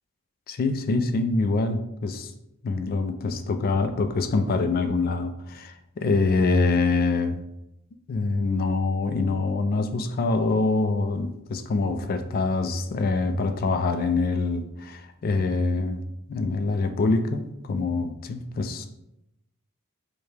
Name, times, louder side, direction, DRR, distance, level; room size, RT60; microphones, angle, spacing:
voice 1, 0.5-2.3 2.6-7.4 8.1-16.0 16.3-18.9, left 3 dB, 45° left, 8 dB, 0.3 m, -25 dB
4.6 x 2.1 x 3.3 m, 0.83 s
head